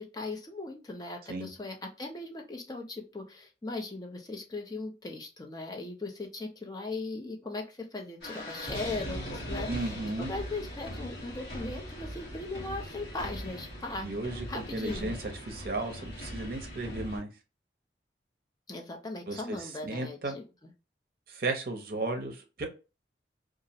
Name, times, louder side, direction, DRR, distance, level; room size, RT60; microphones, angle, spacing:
voice 1, 0.0-14.1 14.5-15.2 18.7-20.7, left 2 dB, 20° left, 3 dB, 0.4 m, -39 dB
sound 1, 8.2-17.2, equal, 75° left, 1.1 m, -40 dB
voice 2, 9.7-10.3 14.0-15.2 15.5-17.3 19.3-19.6 19.8-20.4 21.3-22.7, right 2 dB, 55° right, 4 dB, 0.5 m, -34 dB
2.3 x 2.0 x 2.6 m, 0.30 s
head